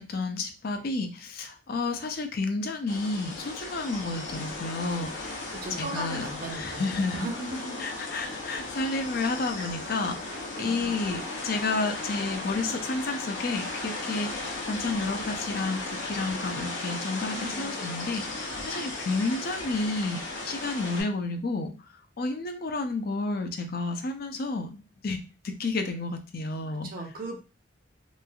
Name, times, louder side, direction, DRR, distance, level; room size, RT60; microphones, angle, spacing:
voice 1, 0.0-5.4 5.8-6.2 6.5-7.3 7.8-21.7 22.2-25.2 25.4-26.9, left 3 dB, 50° left, 6 dB, 0.5 m, -31 dB
sound 1, 2.9-21.0, left 2 dB, 65° left, 0.8 m, -36 dB
voice 2, 5.5-7.9 10.2-10.9 17.3-17.8 26.7-27.4, right 2 dB, 50° right, 2 dB, 0.6 m, -38 dB
3.1 x 2.4 x 2.3 m, 0.33 s
head